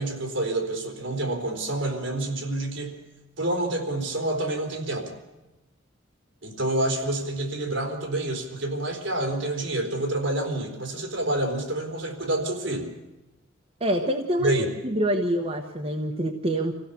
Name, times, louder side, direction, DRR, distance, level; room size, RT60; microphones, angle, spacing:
voice 1, 0.0-3.0 3.4-5.2 6.4-12.9 14.4-14.7, right 1 dB, 65° right, 3 dB, 4.0 m, -28 dB
voice 2, 13.8-14.5 14.8-16.7, right 1 dB, 30° right, 2 dB, 1.3 m, -26 dB
26.0 x 16.0 x 7.0 m, 1.1 s
head